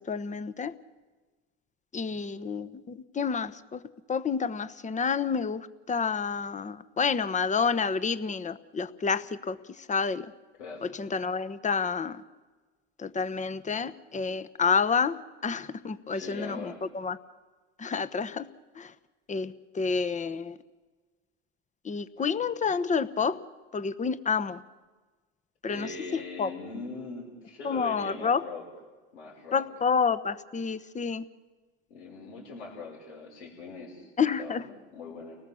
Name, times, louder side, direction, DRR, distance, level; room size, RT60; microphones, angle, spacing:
voice 1, 0.1-0.7 1.9-3.8 4.1-10.3 10.8-12.2 13.0-17.2 17.8-18.5 18.8-18.9 19.3-20.6 21.8-23.4 23.7-24.6 25.6-25.9 26.4-26.5 27.6-28.4 29.5-31.2 34.2-34.7, left 5 dB, 20° left, 12 dB, 1.0 m, -29 dB
voice 2, 16.1-16.8 25.6-28.6 29.1-29.6 31.9-35.4, left 3 dB, 90° left, -1 dB, 5.8 m, -41 dB
30.0 x 19.0 x 7.1 m, 1.3 s
supercardioid pair, 90°, 33 cm